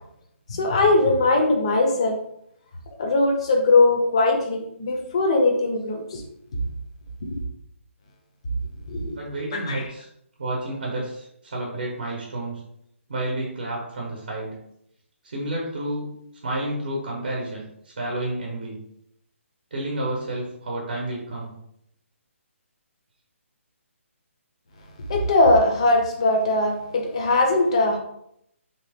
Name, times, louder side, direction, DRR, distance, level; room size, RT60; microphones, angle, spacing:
voice 1, 0.5-2.2 3.0-6.2 7.3-7.4 8.9-9.2 9.5-9.8 25.1-28.0, left 2 dB, 25° left, 1 dB, 0.5 m, -20 dB
voice 2, 9.1-10.1 10.4-12.6 13.1-14.6 15.2-16.1 16.4-17.6 18.0-18.8 19.7-21.5, right 1 dB, 35° right, -2 dB, 0.8 m, -30 dB
3.4 x 2.8 x 3.4 m, 0.75 s
hypercardioid pair, 175°, 7 cm